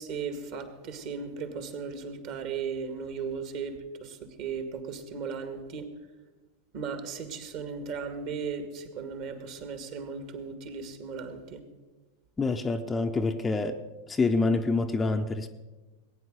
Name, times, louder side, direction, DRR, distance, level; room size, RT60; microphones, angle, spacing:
voice 1, 0.0-5.9 6.7-11.6, right 5 dB, 45° right, 9 dB, 2.0 m, -36 dB
voice 2, 12.4-13.8 14.1-15.5, left 3 dB, 15° left, 6 dB, 0.8 m, -26 dB
19.5 x 9.6 x 6.5 m, 1.2 s
figure-of-eight pair, 90°, 0 cm